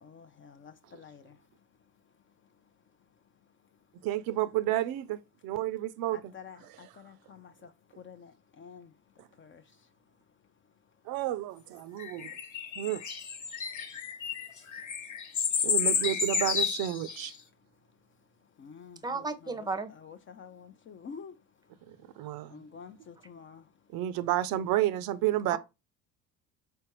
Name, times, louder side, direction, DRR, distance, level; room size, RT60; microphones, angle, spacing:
voice 1, 0.0-1.4 6.1-8.9 9.4-9.6 18.6-19.7 20.0-21.4 22.5-23.7, left 6 dB, 30° left, 0.4 m, -49 dB
voice 2, 4.0-6.3 6.7-6.9 9.2-9.3 11.1-12.3 12.8-13.0 15.6-17.3 21.9-22.6 23.9-25.6, right 14 dB, 60° right, 0.5 m, -31 dB
sound 1, 12.0-17.3, left 6 dB, 45° left, 1.2 m, -31 dB
voice 3, 19.0-19.9 25.5-25.6, right 3 dB, 10° right, 0.7 m, -33 dB
4.5 x 3.4 x 3.0 m
supercardioid pair, 80°, 41 cm